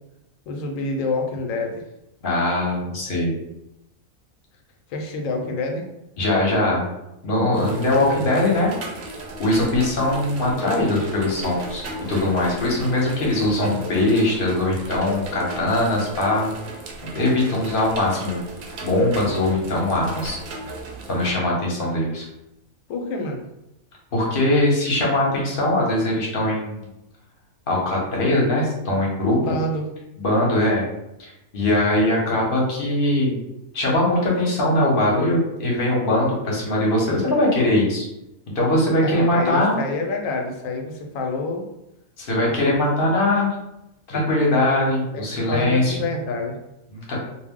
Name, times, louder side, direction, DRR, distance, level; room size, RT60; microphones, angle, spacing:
voice 1, 0.5-1.8 4.9-5.9 22.9-23.4 29.3-29.9 39.0-41.6 42.5-42.6 45.1-46.6, left 2 dB, 75° left, 3 dB, 0.9 m, -27 dB
voice 2, 2.2-3.4 6.2-6.9 7.2-8.7 9.4-16.5 17.1-18.4 18.8-20.4 21.1-22.3 24.1-26.8 27.7-29.5 30.2-30.8 31.2-33.4 33.7-38.1 38.5-39.8 42.2-43.5 44.1-46.0 46.9-47.2, left 1 dB, 45° left, -3 dB, 0.8 m, -21 dB
sound 1, 7.5-21.3, right 2 dB, 65° right, 0.7 m, -35 dB
2.3 x 2.1 x 3.5 m, 0.89 s
omnidirectional pair, 1.5 m